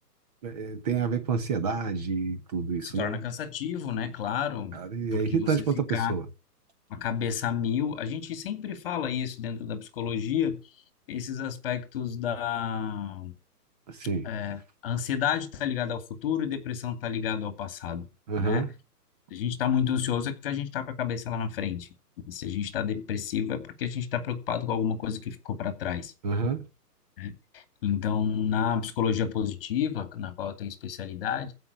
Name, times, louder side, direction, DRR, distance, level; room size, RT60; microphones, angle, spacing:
voice 1, 0.4-3.2 4.7-6.3 13.9-14.3 18.3-18.7 26.2-26.6, right 5 dB, 25° right, 1.1 m, -28 dB
voice 2, 2.8-4.8 5.1-5.6 5.9-6.2 6.9-10.6 11.1-13.3 14.2-18.1 18.4-18.7 19.3-21.9 22.3-26.1 27.2-31.5, left 8 dB, 35° left, 2.4 m, -30 dB
15.5 x 5.8 x 8.3 m
hypercardioid pair, 165°, 48 cm